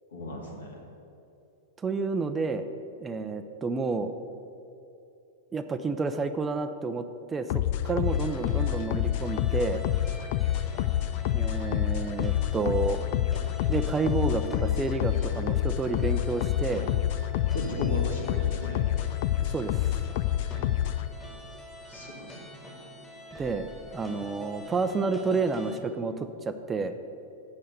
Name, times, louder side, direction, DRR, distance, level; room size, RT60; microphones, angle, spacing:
voice 1, 0.1-0.8 17.5-18.9 21.9-22.4, left 1 dB, 75° left, 0 dB, 2.1 m, -36 dB
voice 2, 1.8-2.6 3.0-4.1 5.5-9.8 11.3-13.0 13.7-16.9 19.5-20.0 23.4-23.7 23.9-27.0, right 4 dB, 15° right, 8 dB, 0.6 m, -30 dB
sound 1, 7.5-21.1, left 12 dB, 50° left, 0.4 m, -28 dB
sound 2, 8.0-25.8, equal, 10° left, 2.4 m, -44 dB
8.6 x 6.4 x 7.9 m, 2.7 s
figure-of-eight pair, 95°, 0 cm